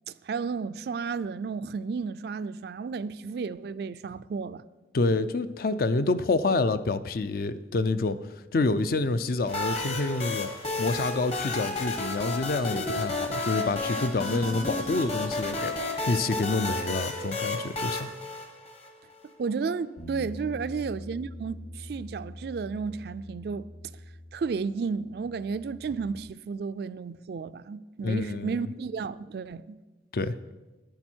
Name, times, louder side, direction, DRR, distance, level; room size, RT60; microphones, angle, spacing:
voice 1, 0.1-4.6 19.4-23.7 24.3-29.8, right 5 dB, 60° right, 0.3 m, -33 dB
voice 2, 4.9-8.2 8.5-10.5 10.8-15.7 16.0-18.1 28.0-28.6 30.1-30.4, left 3 dB, 55° left, 0.4 m, -27 dB
sound 1, 9.5-19.1, left 2 dB, 35° left, 1.1 m, -32 dB
Bass guitar, 20.0-26.2, left 1 dB, 85° left, 2.4 m, -44 dB
10.5 x 9.9 x 4.4 m
head